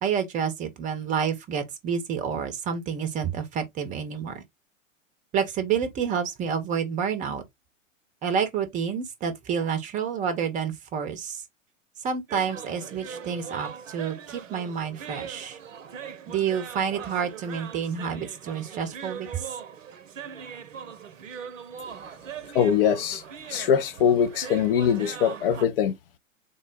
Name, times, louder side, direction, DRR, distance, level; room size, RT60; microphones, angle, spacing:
voice 1, 0.0-4.4 5.3-7.4 8.2-11.4 12.0-15.6 16.3-19.5, right 7 dB, 20° right, 0.7 m, -29 dB
sound 1, 12.3-25.7, right 7 dB, 75° right, 0.6 m, -40 dB
voice 2, 22.5-23.2 23.5-25.9, left 8 dB, 45° left, 0.5 m, -22 dB
3.8 x 2.0 x 3.8 m
figure-of-eight pair, 100°, 39 cm